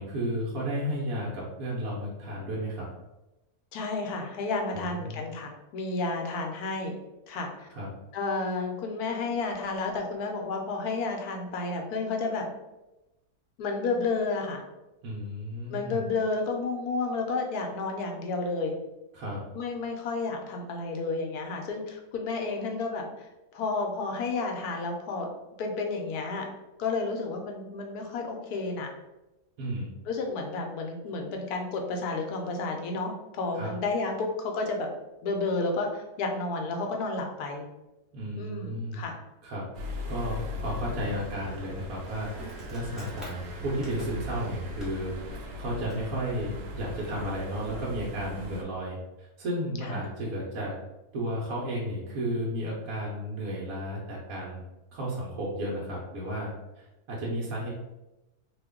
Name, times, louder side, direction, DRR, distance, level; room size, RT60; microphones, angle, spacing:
voice 1, 0.0-2.9 4.7-5.2 7.7-7.9 15.0-16.0 19.1-19.4 29.6-29.9 33.5-33.7 38.1-39.0 39.4-39.6 40.1-42.3 42.7-50.7 51.1-54.6 54.9-57.7, equal, 70° right, -5 dB, 1.1 m, -33 dB
voice 2, 3.7-6.9 7.3-7.7 8.1-12.5 13.6-14.6 15.7-18.7 19.5-25.3 25.6-26.5 26.8-28.9 30.1-34.9 35.2-37.6 38.4-39.1 49.8-50.0, left 3 dB, 75° left, 2 dB, 1.1 m, -31 dB
sound 1, 39.7-48.6, left 1 dB, 90° right, 1.2 m, -39 dB
Insect, 40.0-46.2, equal, ahead, 0.4 m, -49 dB
2.9 x 2.2 x 3.4 m, 0.98 s
omnidirectional pair, 1.6 m